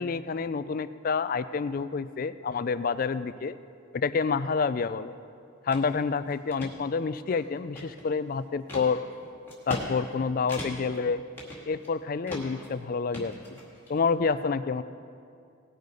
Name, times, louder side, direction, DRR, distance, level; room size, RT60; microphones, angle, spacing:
voice 1, 0.0-3.6 3.9-5.1 5.6-9.0 9.7-11.2 11.7-13.3 13.9-14.8, left 5 dB, 45° left, 14 dB, 0.3 m, -28 dB
sound 1, 5.7-5.8 6.3-6.7 7.3-8.2 8.7-8.9 9.5-9.9 10.1-10.2 10.5-11.0 11.4-11.9 12.3-12.7 13.1-13.9, left 1 dB, 10° left, 2.0 m, -38 dB
18.0 x 6.7 x 5.1 m, 2.3 s
head